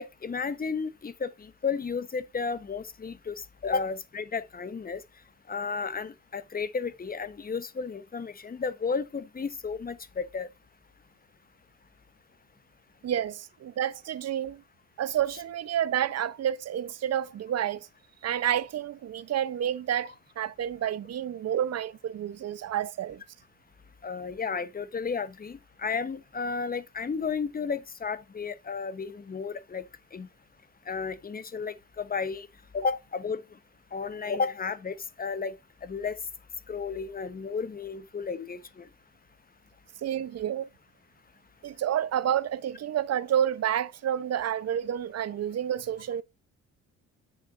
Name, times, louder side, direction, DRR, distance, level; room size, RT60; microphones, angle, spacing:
voice 1, 0.0-3.3 3.6-5.0 5.5-10.5 24.0-29.8 30.1-30.3 30.9-32.5 32.7-33.4 33.9-35.6 35.8-36.2 36.7-38.9, left 5 dB, 30° left, 1.1 m, -33 dB
voice 2, 13.0-14.6 15.0-17.9 18.2-23.2 40.0-40.7 41.6-46.2, right 10 dB, 55° right, 0.9 m, -29 dB
9.2 x 7.0 x 2.6 m
cardioid pair, 90°, 30 cm